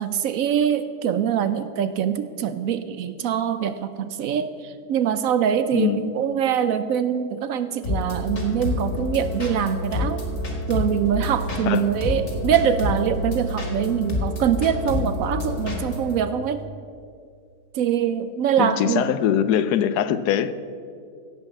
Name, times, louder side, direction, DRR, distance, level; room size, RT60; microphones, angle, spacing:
voice 1, 0.0-10.2 10.7-16.6 17.7-19.1, right 9 dB, 70° right, 11 dB, 0.9 m, -24 dB
voice 2, 5.7-6.1 11.7-11.9 18.6-20.5, left 9 dB, 80° left, 13 dB, 1.2 m, -22 dB
sound 1, 7.8-16.2, left 2 dB, 55° left, 2.3 m, -28 dB
16.0 x 5.4 x 7.2 m, 2.3 s
omnidirectional pair, 1.7 m